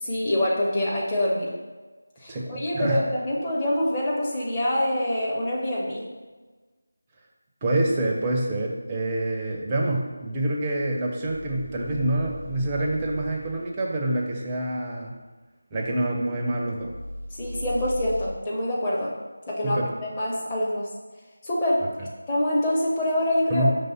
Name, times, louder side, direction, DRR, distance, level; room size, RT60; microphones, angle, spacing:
voice 1, 0.0-1.5 2.2-6.1 17.3-19.1 19.5-20.9 21.4-21.9 22.3-23.7, left 1 dB, 15° left, -5 dB, 0.9 m, -25 dB
voice 2, 2.3-3.0 7.6-15.2 15.7-16.9 19.6-19.9 23.5-23.7, right 1 dB, 15° right, -1 dB, 0.6 m, -26 dB
sound 1, 11.2-13.4 16.8-18.3, left 1 dB, 60° left, 1.7 m, -37 dB
5.3 x 3.2 x 5.5 m, 1.3 s
figure-of-eight pair, 165°, 0 cm